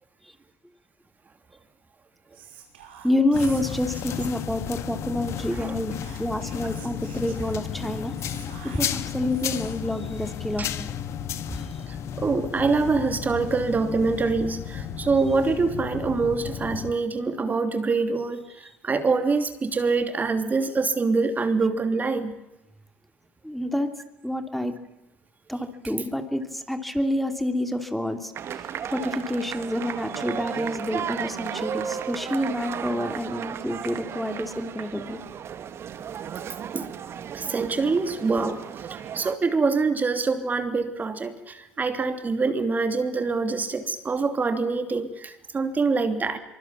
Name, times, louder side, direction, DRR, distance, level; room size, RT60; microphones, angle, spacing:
Whispering, 2.3-4.6 5.5-9.9, right 6 dB, 85° right, 4.9 m, -47 dB
voice 1, 3.0-5.9 6.2-8.1 8.7-10.9 11.5-11.6 23.4-23.9 24.2-24.7 25.5-28.3 28.9-35.2, left 1 dB, ahead, 7 dB, 2.8 m, -28 dB
sound 1, 3.3-16.9, left 9 dB, 60° left, 1.6 m, -33 dB
voice 2, 12.2-18.4 18.8-22.4 36.7-36.9 37.3-38.6 38.9-46.4, right 4 dB, 30° right, 8 dB, 2.9 m, -25 dB
sound 2, 28.3-39.4, right 8 dB, 50° right, 1.8 m, -34 dB
24.5 x 23.5 x 7.3 m, 0.95 s
hypercardioid pair, 65°, 5 cm